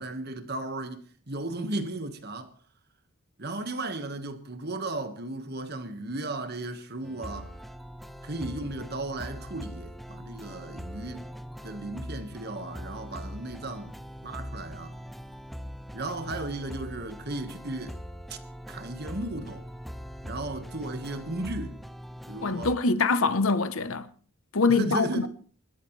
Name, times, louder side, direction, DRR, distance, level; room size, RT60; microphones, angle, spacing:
voice 1, 0.0-2.5 3.4-7.5 8.2-11.3 11.6-15.0 15.9-18.0 18.3-18.4 18.7-19.7 20.2-21.8 22.3-22.7 24.7-25.3, right 2 dB, 45° right, 1.6 m, -35 dB
sound 1, 7.0-22.8, equal, ahead, 0.6 m, -41 dB
voice 2, 22.4-24.1 24.5-25.3, left 4 dB, 75° left, 1.0 m, -24 dB
28.0 x 13.0 x 3.3 m
head